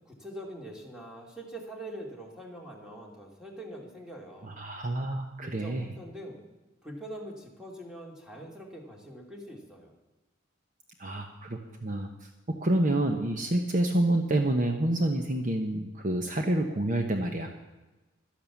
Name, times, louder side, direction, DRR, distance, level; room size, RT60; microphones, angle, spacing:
voice 1, 0.0-4.6 5.4-6.4 6.8-9.9, right 1 dB, 5° right, -1 dB, 2.4 m, -43 dB
voice 2, 4.5-5.8 11.0-12.1 12.5-17.6, right 1 dB, 40° right, 4 dB, 0.9 m, -28 dB
12.5 x 11.0 x 7.2 m, 1.1 s
head